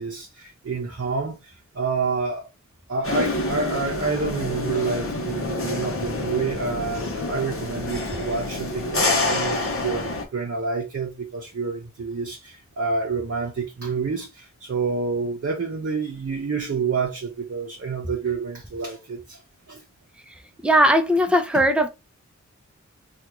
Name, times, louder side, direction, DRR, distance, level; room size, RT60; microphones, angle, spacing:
voice 1, 0.0-2.5 2.9-19.4 19.7-19.8, right 4 dB, 50° right, 0.7 m, -28 dB
sound 1, 3.0-10.3, left 2 dB, 50° left, 0.8 m, -27 dB
voice 2, 20.6-21.9, equal, 5° right, 0.5 m, -18 dB
3.4 x 2.3 x 2.9 m
wide cardioid pair, 65°, 30 cm